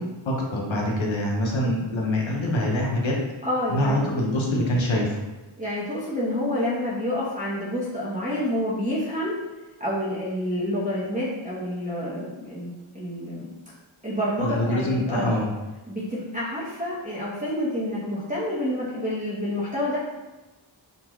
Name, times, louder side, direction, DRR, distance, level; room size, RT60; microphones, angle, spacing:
voice 1, 0.0-3.1 3.7-5.2 14.4-15.5, left 1 dB, 70° left, -1 dB, 0.8 m, -25 dB
voice 2, 3.4-4.1 5.6-9.4 9.8-13.5 14.0-15.4 15.9-20.0, left 1 dB, 15° right, -9 dB, 0.8 m, -28 dB
3.8 x 2.3 x 3.0 m, 1.1 s
wide cardioid pair, 80°, 48 cm